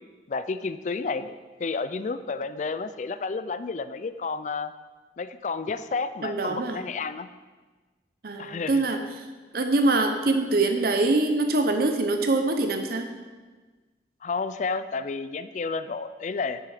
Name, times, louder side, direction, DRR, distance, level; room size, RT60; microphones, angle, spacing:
voice 1, 0.3-4.7 5.2-7.3 8.4-8.8 14.2-16.6, left 4 dB, 40° left, 13 dB, 0.4 m, -31 dB
voice 2, 6.2-6.8 8.2-9.3 9.5-13.1, right 2 dB, 55° right, 6 dB, 0.7 m, -24 dB
10.5 x 7.7 x 5.0 m, 1.3 s
head